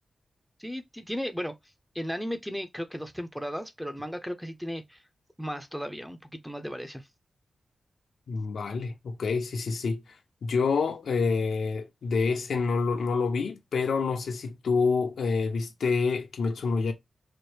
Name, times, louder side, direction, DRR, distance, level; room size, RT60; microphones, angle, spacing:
voice 1, 0.6-1.5 1.9-5.0 5.4-7.1, equal, ahead, 0.6 m, -35 dB
voice 2, 8.3-10.0 10.4-16.9, left 4 dB, 90° left, 0.8 m, -27 dB
4.2 x 2.1 x 3.2 m
wide cardioid pair, 115°, 0 cm